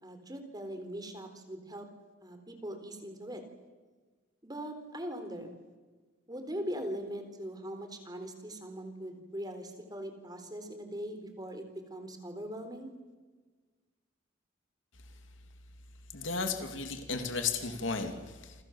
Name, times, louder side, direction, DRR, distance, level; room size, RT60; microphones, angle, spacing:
voice 1, 0.0-1.9 2.2-3.4 4.4-5.5 6.3-12.9, equal, 20° right, 7 dB, 3.8 m, -41 dB
voice 2, 16.1-18.5, left 4 dB, 75° left, 6 dB, 2.7 m, -34 dB
29.0 x 24.5 x 7.3 m, 1.3 s
head